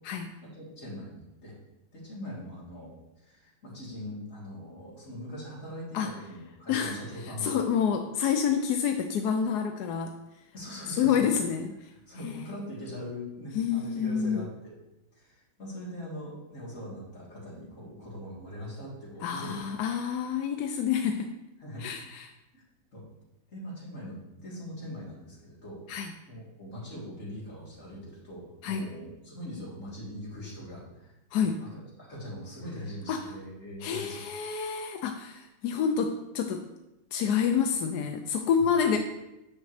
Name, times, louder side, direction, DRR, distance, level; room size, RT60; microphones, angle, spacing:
voice 1, 0.4-1.6 1.9-2.9 3.2-7.7 10.5-11.2 11.9-14.7 15.1-19.7 21.6-21.9 22.5-22.6 22.9-23.0 23.5-25.8 26.3-31.2 31.5-34.2 38.6-38.7, equal, 40° left, -7 dB, 3.5 m, -41 dB
voice 2, 6.7-7.0 7.4-10.1 11.0-11.7 12.2-12.4 13.5-14.4 19.2-21.3 21.8-22.2 25.9-26.1 28.6-28.8 31.3-31.6 33.1-33.3 33.8-36.6 37.1-39.0, left 7 dB, 70° left, 6 dB, 1.0 m, -28 dB
10.5 x 6.9 x 3.2 m, 0.95 s
omnidirectional pair, 2.1 m